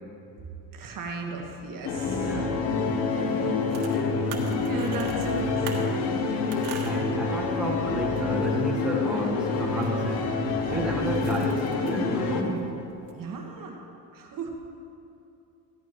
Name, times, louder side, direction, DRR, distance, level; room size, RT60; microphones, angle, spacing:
voice 1, 0.7-2.4 4.4-6.1 13.2-13.8 14.1-14.5, right 3 dB, 50° right, 1 dB, 1.6 m, -36 dB
sound 1, 1.8-12.4, left 4 dB, 70° left, 1.1 m, -27 dB
voice 2, 2.0-2.5 6.8-12.8, right 1 dB, ahead, -2 dB, 1.4 m, -32 dB
sound 2, 2.3-13.1, right 6 dB, 80° right, 1.6 m, -46 dB
15.0 x 10.5 x 3.1 m, 2.8 s
cardioid pair, 100°, 43 cm